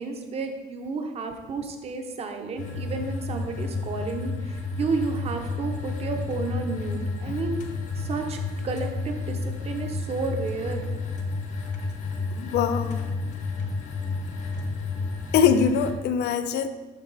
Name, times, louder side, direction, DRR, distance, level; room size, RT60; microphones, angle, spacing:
voice 1, 0.0-7.6 8.0-8.4 8.6-10.9, right 4 dB, 30° right, 5 dB, 0.8 m, -31 dB
sound 1, 2.6-15.9, left 3 dB, 40° left, 0.9 m, -31 dB
voice 2, 12.4-13.0 15.3-16.7, left 7 dB, 60° left, 10 dB, 0.6 m, -23 dB
11.5 x 4.0 x 4.0 m, 1.2 s
cardioid pair, 170°, 19 cm